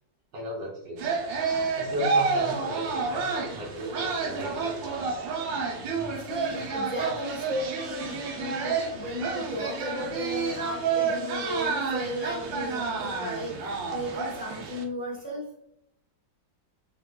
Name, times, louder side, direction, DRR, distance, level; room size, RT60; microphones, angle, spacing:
voice 1, 0.3-1.1 1.7-5.3, equal, 65° right, -3 dB, 1.0 m, -36 dB
sound 1, 1.0-14.8, right 5 dB, 90° right, 1.4 m, -30 dB
voice 2, 6.2-15.4, equal, 10° left, -5 dB, 0.6 m, -35 dB
3.6 x 2.9 x 2.3 m, 0.73 s
omnidirectional pair, 2.0 m